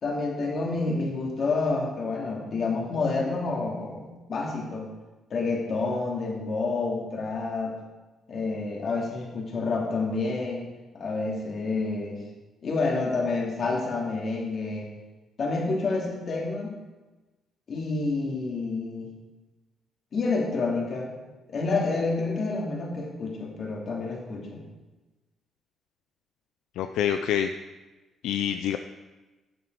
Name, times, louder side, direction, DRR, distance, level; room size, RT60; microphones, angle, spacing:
voice 1, 0.0-4.9 5.3-7.8 8.3-10.7 10.9-12.2 12.6-14.9 15.4-16.8 17.7-19.1 20.1-21.1 21.5-24.6, left 3 dB, 55° left, -1 dB, 2.7 m, -28 dB
voice 2, 26.8-27.5 28.2-28.8, left 9 dB, 85° left, 8 dB, 0.4 m, -26 dB
11.0 x 7.6 x 4.8 m, 1.1 s
cardioid pair, 90°, 0 cm